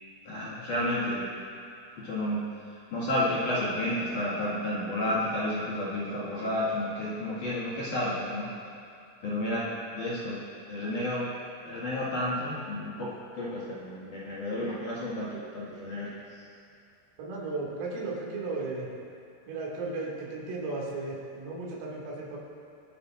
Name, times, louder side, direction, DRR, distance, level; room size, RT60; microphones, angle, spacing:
voice 1, 0.3-1.2 2.0-2.4 2.7-8.5 9.2-9.7 9.9-10.4 10.7-11.3 11.6-16.4, left 1 dB, 50° left, -9 dB, 2.9 m, -31 dB
voice 2, 17.2-18.9 19.5-22.4, right 3 dB, 85° right, -5 dB, 5.3 m, -35 dB
26.0 x 10.0 x 2.7 m, 2.6 s
omnidirectional pair, 5.8 m